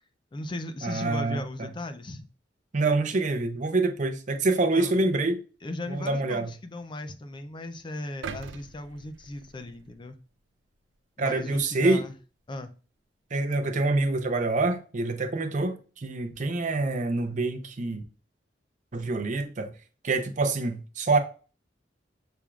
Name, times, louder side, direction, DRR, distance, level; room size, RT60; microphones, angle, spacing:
voice 1, 0.3-2.3 4.7-5.0 5.6-10.2 11.2-12.1 12.5-12.7, left 2 dB, 25° left, 0.4 m, -37 dB
voice 2, 0.8-1.7 2.7-5.4 5.9-6.5 11.2-12.0 13.3-18.0 18.9-19.7 20.0-21.2, right 3 dB, 45° right, 0.6 m, -26 dB
sound 1, 8.2-10.4 10.9-11.0, right 5 dB, 85° right, 0.4 m, -42 dB
6.0 x 3.5 x 2.3 m
head